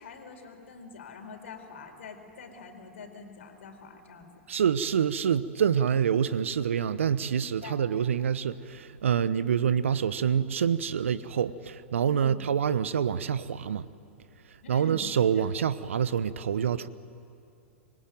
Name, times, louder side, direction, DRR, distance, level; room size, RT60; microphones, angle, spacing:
voice 1, 0.0-4.3 7.6-7.8 12.1-12.4 14.6-15.1 15.4-15.5, left 4 dB, 65° left, 4.4 m, -45 dB
voice 2, 4.5-13.9 14.7-16.9, right 8 dB, 70° right, 1.0 m, -26 dB
26.5 x 23.0 x 9.3 m
figure-of-eight pair, 100°, 7 cm